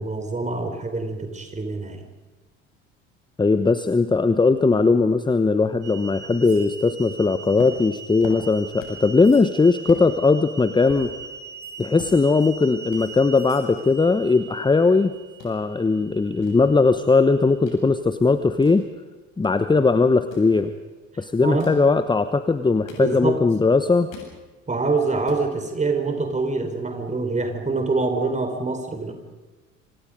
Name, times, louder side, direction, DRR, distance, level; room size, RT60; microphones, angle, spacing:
voice 1, 0.0-2.0 21.4-21.7 22.9-23.4 24.7-29.1, right 3 dB, 20° right, 5 dB, 4.9 m, -25 dB
voice 2, 3.4-11.1 11.8-15.1 15.4-18.8 19.4-20.7 21.2-24.1, left 3 dB, 10° left, 11 dB, 1.1 m, -19 dB
sound 1, 5.8-17.8 18.5-18.6 19.5-19.6 20.4-20.7 23.3-23.4, right 5 dB, 50° right, 7.0 m, -41 dB
sound 2, 7.6-9.1 9.5-9.6 9.9-10.1 10.5-12.5 12.8-13.0 13.7-14.9 15.2-15.6 16.1-17.8 18.2-19.5 20.1-20.5 21.4-21.9 22.5-23.5 23.8-24.4 24.8-24.9 25.1-25.5, left 5 dB, 55° left, 7.7 m, -42 dB
27.5 x 26.0 x 5.3 m, 1.2 s
figure-of-eight pair, 60°, 37 cm